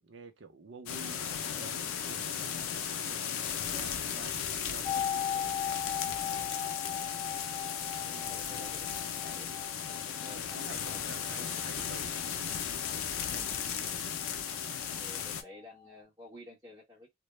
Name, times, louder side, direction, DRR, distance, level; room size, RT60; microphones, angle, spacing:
voice 1, 0.0-5.6 5.9-6.3 8.5-8.8 10.3-12.2 12.9-13.2 13.6-13.7, right 4 dB, 60° right, 0.6 m, -51 dB
sound 1, 0.9-15.4, left 8 dB, 85° left, 0.4 m, -36 dB
sound 2, 4.8-14.6 14.8-14.9, left 8 dB, 30° left, 0.4 m, -39 dB
voice 2, 8.0-9.6 10.1-11.8 13.3-13.7 15.0-17.1, left 1 dB, 15° right, 0.9 m, -52 dB
2.2 x 2.0 x 3.0 m
head